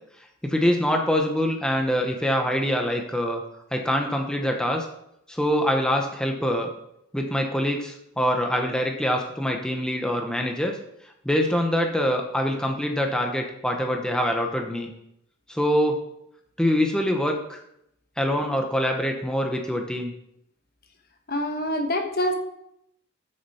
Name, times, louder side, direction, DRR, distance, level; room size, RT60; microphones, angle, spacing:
voice 1, 0.4-3.4 3.7-4.9 5.3-6.7 7.1-10.8 11.2-14.9 15.5-16.0 16.6-17.6 18.2-20.1, equal, 5° left, 2 dB, 0.8 m, -24 dB
voice 2, 21.3-22.3, left 1 dB, 45° left, 5 dB, 1.2 m, -25 dB
12.5 x 6.5 x 4.3 m, 0.78 s
head